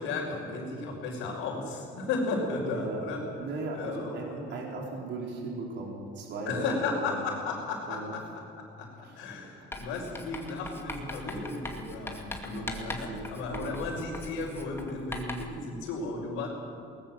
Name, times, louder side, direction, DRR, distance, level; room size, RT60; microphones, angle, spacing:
voice 1, 0.0-3.2 3.7-4.6 6.4-8.2 8.6-16.5, left 3 dB, 90° left, -7 dB, 4.8 m, -34 dB
voice 2, 3.4-7.2 7.9-8.1 9.1-9.2 9.5-9.7 12.5-13.7, right 3 dB, 65° right, -1 dB, 4.7 m, -37 dB
Writing, 9.7-15.6, left 1 dB, 10° left, 2.3 m, -41 dB
21.5 x 19.0 x 7.6 m, 2.4 s
cardioid pair, 115°, 20 cm